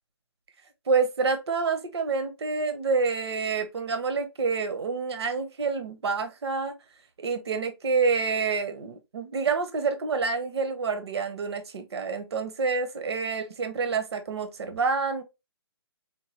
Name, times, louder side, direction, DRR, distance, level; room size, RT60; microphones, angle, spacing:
voice 1, 0.9-6.7 7.2-15.2, right 4 dB, 65° right, 0.8 m, -28 dB
4.6 x 2.2 x 2.9 m
hypercardioid pair, 160°, 15 cm